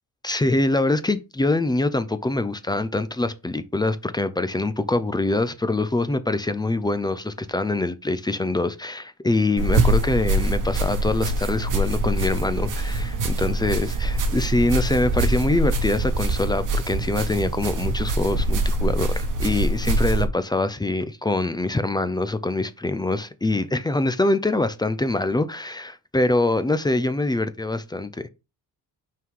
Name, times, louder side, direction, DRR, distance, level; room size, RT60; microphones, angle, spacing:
voice 1, 0.2-28.3, left 2 dB, 10° left, 0.3 m, -24 dB
sound 1, 9.6-20.3, right 2 dB, 50° right, 1.1 m, -24 dB
5.8 x 4.7 x 3.6 m
wide cardioid pair, 170°, 40 cm